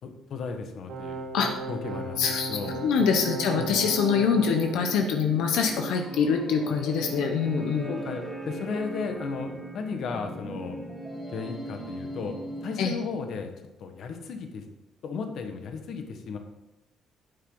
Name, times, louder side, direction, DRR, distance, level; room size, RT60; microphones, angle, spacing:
voice 1, 0.0-1.2 1.7-2.2 2.5-2.7 3.5-3.8 7.5-10.8 11.3-12.3 12.6-13.5 13.8-14.6 15.0-16.4, left 5 dB, 55° left, 5 dB, 1.5 m, -35 dB
sound 1, 0.9-4.8, right 3 dB, 90° right, 2.7 m, -36 dB
sound 2, 1.9-13.3, right 2 dB, 5° right, 1.7 m, -39 dB
voice 2, 2.2-8.0 12.8-13.0, left 6 dB, 85° left, 4 dB, 1.1 m, -25 dB
11.0 x 9.2 x 4.0 m, 0.98 s
cardioid pair, 160°, 0 cm